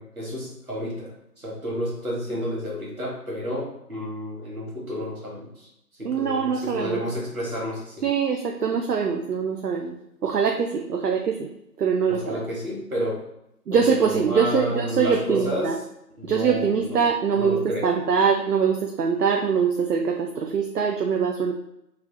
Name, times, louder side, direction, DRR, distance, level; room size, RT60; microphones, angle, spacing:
voice 1, 0.0-5.7 6.0-8.1 12.1-13.2 13.7-15.8 16.2-17.0 17.3-17.9, equal, 60° right, -3 dB, 1.3 m, -31 dB
voice 2, 6.0-7.0 8.0-10.0 10.2-11.5 11.8-12.4 13.7-15.8 16.2-21.5, right 6 dB, 75° right, 2 dB, 0.5 m, -23 dB
3.2 x 2.2 x 3.7 m, 0.83 s
figure-of-eight pair, 175°, 47 cm